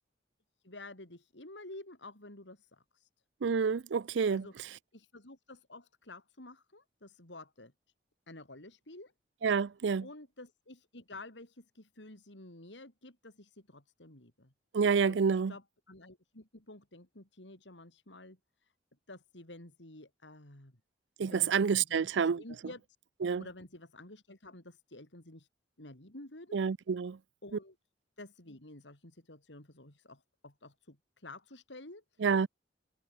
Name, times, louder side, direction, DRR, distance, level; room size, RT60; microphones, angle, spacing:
voice 1, 0.6-3.1 4.3-4.5 4.9-7.7 8.3-9.1 10.0-14.5 15.0-18.7 19.1-20.7 21.2-21.5 21.9-22.8 23.4-25.5 25.8-26.6 27.4-27.8 28.2-32.3, left 2 dB, 85° left, 4.6 m, -51 dB
voice 2, 3.4-4.4 9.4-10.1 14.7-15.5 21.2-22.4 23.2-23.4 26.5-27.2 32.2-32.5, right 6 dB, 90° right, 0.5 m, -28 dB
head